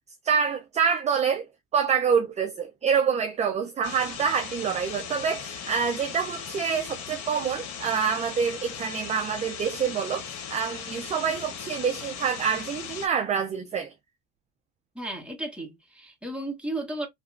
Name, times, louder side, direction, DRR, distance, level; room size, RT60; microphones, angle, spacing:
voice 1, 0.2-1.5 1.7-13.9, right 6 dB, 20° right, 0.3 m, -26 dB
sound 1, 3.8-13.1, left 7 dB, 65° left, 1.1 m, -38 dB
voice 2, 14.9-17.1, right 1 dB, 5° right, 1.2 m, -34 dB
2.8 x 2.3 x 2.4 m
supercardioid pair, 100°, 32 cm